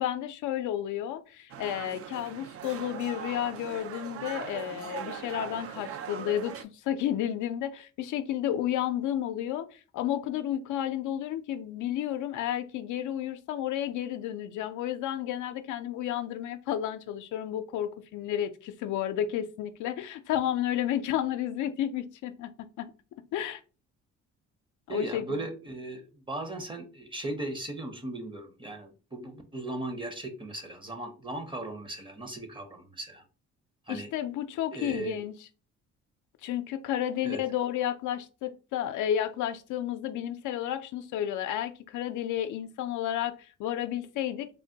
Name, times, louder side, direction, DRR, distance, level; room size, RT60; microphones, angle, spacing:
voice 1, 0.0-22.9 23.3-23.6 24.9-25.5 33.9-35.3 36.4-44.5, left 11 dB, 80° left, 0.5 m, -32 dB
sound 1, 1.5-6.6, right 8 dB, 50° right, 0.4 m, -40 dB
voice 2, 24.9-33.2 33.9-34.1 34.7-35.2 37.2-37.4, right 2 dB, 15° right, 0.7 m, -37 dB
3.3 x 2.1 x 2.7 m
cardioid pair, 90°, 30 cm